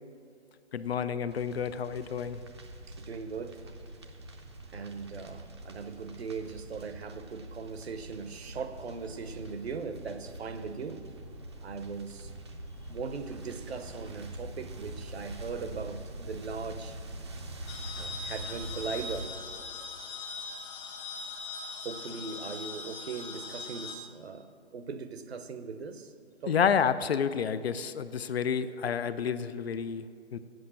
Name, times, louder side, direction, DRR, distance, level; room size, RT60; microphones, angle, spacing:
voice 1, 0.7-2.4 26.5-30.4, left 7 dB, 60° left, 13 dB, 0.5 m, -30 dB
sound 1, 1.3-19.3, right 1 dB, 25° right, 0.5 m, -44 dB
voice 2, 3.0-3.6 4.7-11.0 11.6-12.3 12.9-17.0 18.0-19.3 21.8-26.1 26.4-26.6, right 5 dB, 60° right, 10 dB, 0.8 m, -39 dB
sound 2, 17.7-24.0, left 4 dB, 40° left, 1.2 m, -40 dB
7.8 x 7.7 x 7.3 m, 2.2 s
hypercardioid pair, 155°, 35 cm